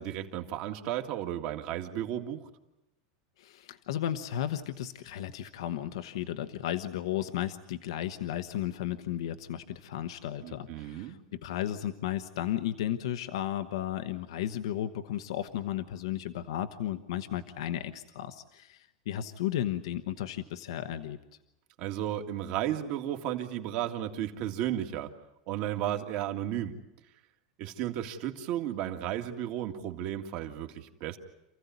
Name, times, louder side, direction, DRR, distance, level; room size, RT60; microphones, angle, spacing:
voice 1, 0.0-2.5 10.4-11.2 21.8-25.1 25.5-26.8 27.6-31.2, right 11 dB, 45° right, 4 dB, 2.0 m, -34 dB
voice 2, 3.4-21.2, left 11 dB, 80° left, 8 dB, 1.1 m, -34 dB
28.5 x 15.5 x 9.4 m, 0.95 s
supercardioid pair, 155°, 3 cm